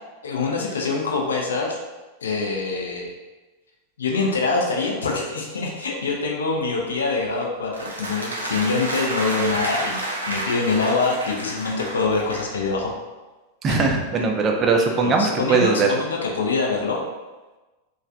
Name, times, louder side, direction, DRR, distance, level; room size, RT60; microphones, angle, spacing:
voice 1, 0.2-1.8 2.2-3.1 4.0-12.9 13.7-13.8 15.0-17.0, left 3 dB, 70° left, -1 dB, 0.4 m, -24 dB
sound 1, 7.7-12.6, right 1 dB, 80° right, 0.5 m, -30 dB
voice 2, 13.6-15.9, right 4 dB, 25° right, 2 dB, 0.4 m, -20 dB
3.1 x 2.3 x 2.4 m, 1.2 s
figure-of-eight pair, 90°, 0 cm